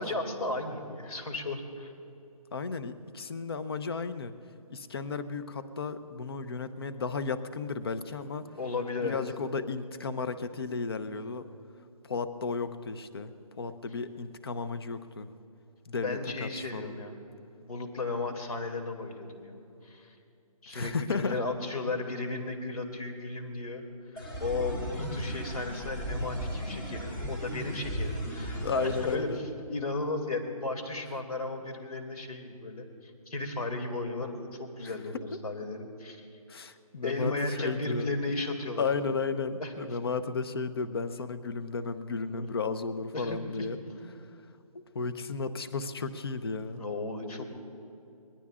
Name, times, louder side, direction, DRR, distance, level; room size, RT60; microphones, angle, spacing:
voice 1, 0.0-1.9 8.5-9.2 16.0-17.2 17.6-19.6 19.8-20.1 20.6-23.8 24.4-28.6 29.0-29.4 29.7-36.2 37.0-38.9 39.6-39.7 42.3-42.5 43.1-43.4 46.8-47.4, left 3 dB, 75° left, 5 dB, 2.6 m, -35 dB
voice 2, 2.5-4.3 4.7-8.4 9.0-11.5 12.1-13.3 13.6-15.3 15.9-16.9 20.7-21.4 24.2-24.4 28.6-29.4 34.9-35.0 36.5-37.3 37.6-38.4 38.8-43.8 44.9-46.8, left 4 dB, 40° left, 12 dB, 0.7 m, -34 dB
sound 1, 24.2-29.2, equal, 10° left, 0.7 m, -35 dB
25.0 x 20.0 x 2.5 m, 2.6 s
hypercardioid pair, 165°, 19 cm